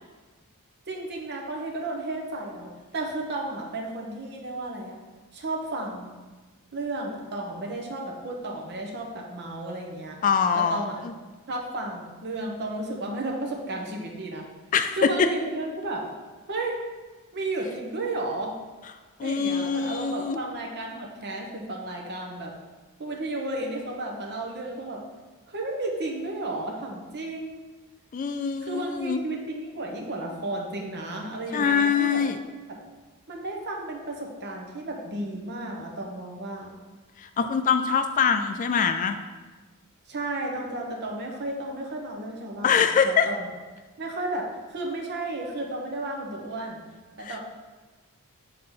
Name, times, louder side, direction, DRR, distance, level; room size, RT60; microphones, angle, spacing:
voice 1, 0.9-5.0 5.3-6.1 6.7-10.2 10.5-11.0 11.5-14.5 15.0-16.0 16.5-16.8 17.3-18.5 19.2-22.5 23.0-25.0 25.5-27.6 28.6-32.2 33.3-36.8 40.1-43.5 44.0-46.9 47.2-47.4, right 2 dB, 50° right, -1 dB, 1.0 m, -33 dB
voice 2, 10.2-11.1 14.7-15.3 19.2-20.4 28.1-29.2 31.5-32.4 37.2-39.2 42.6-43.3 47.2-47.4, left 6 dB, 35° left, 8 dB, 0.3 m, -24 dB
7.1 x 3.8 x 3.8 m, 1.3 s
head